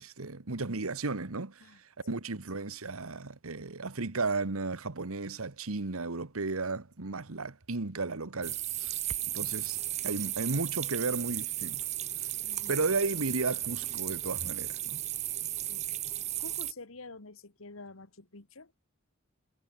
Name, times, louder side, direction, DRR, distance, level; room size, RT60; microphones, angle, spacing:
voice 1, 0.0-1.6 2.0-9.0 9.3-9.8 10.0-11.8 12.7-15.0, right 3 dB, 85° right, 1.4 m, -34 dB
sound 1, 8.4-16.7, right 13 dB, 30° right, 0.5 m, -35 dB
voice 2, 12.4-12.8 15.7-15.9 16.4-18.8, left 3 dB, 75° left, 1.8 m, -48 dB
head